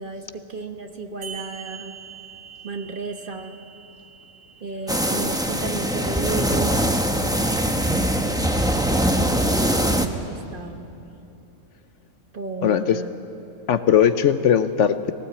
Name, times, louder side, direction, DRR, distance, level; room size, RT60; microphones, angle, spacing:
voice 1, 0.0-2.0 2.6-3.6 4.6-6.8 8.1-9.0 9.4-10.9 12.3-13.1, right 3 dB, 40° right, 5 dB, 1.2 m, -33 dB
sound 1, 1.2-6.2, right 7 dB, 85° right, 1.9 m, -43 dB
sound 2, 4.9-10.1, right 1 dB, 5° right, 0.7 m, -22 dB
voice 2, 12.6-13.0 13.7-15.1, left 9 dB, 65° left, 11 dB, 1.0 m, -19 dB
20.0 x 17.5 x 8.6 m, 2.8 s
omnidirectional pair, 1.4 m